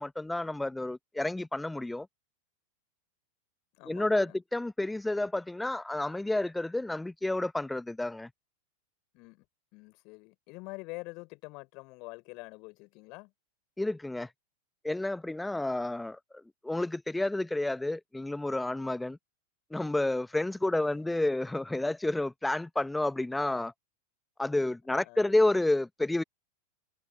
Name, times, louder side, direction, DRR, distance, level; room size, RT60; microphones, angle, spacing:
voice 1, 0.0-2.1 3.9-8.3 13.8-14.3 14.8-19.2 19.7-23.7 24.4-26.2, left 2 dB, 5° left, 1.1 m, -30 dB
voice 2, 3.7-4.4 9.1-9.4 9.7-13.3 20.9-21.0 24.9-25.2, left 27 dB, 40° left, 5.2 m, -46 dB
figure-of-eight pair, 90°, 0 cm